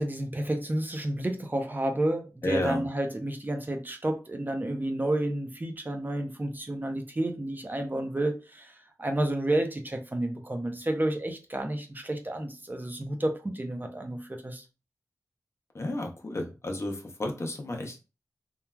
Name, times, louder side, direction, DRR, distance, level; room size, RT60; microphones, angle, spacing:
voice 1, 0.0-14.6, right 1 dB, 30° right, 0.5 m, -30 dB
voice 2, 2.4-2.9 15.7-18.0, left 1 dB, 40° left, 0.6 m, -32 dB
3.1 x 2.3 x 2.2 m
wide cardioid pair, 65°, 7 cm